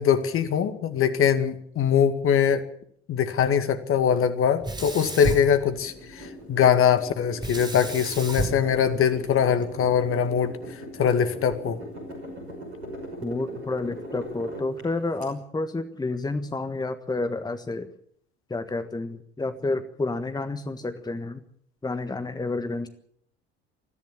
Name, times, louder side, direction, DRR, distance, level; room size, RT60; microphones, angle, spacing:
voice 1, 0.0-2.6 3.1-10.5 11.0-11.8, left 8 dB, 40° left, 11 dB, 2.0 m, -22 dB
Sink (filling or washing), 4.6-6.3 7.4-9.7, right 2 dB, 15° right, 3.6 m, -32 dB
sound 1, 5.8-15.3, equal, 80° right, 5.9 m, -40 dB
voice 2, 13.2-17.9 18.5-21.4 21.8-22.9, left 2 dB, 10° left, 9 dB, 1.5 m, -30 dB
21.0 x 14.5 x 8.7 m, 0.65 s
figure-of-eight pair, 60°, 33 cm